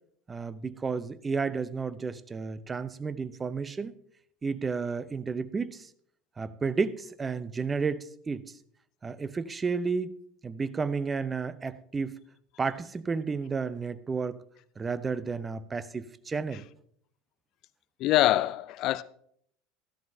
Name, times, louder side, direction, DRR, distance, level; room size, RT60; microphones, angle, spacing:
voice 1, 0.3-3.9 4.4-5.9 6.4-8.6 9.0-10.2 10.4-12.1 12.6-14.4 14.8-16.6, right 5 dB, 20° right, 0.7 m, -32 dB
voice 2, 18.0-19.0, left 15 dB, 50° left, 0.4 m, -24 dB
13.5 x 12.5 x 2.8 m
hypercardioid pair, 75°, 0 cm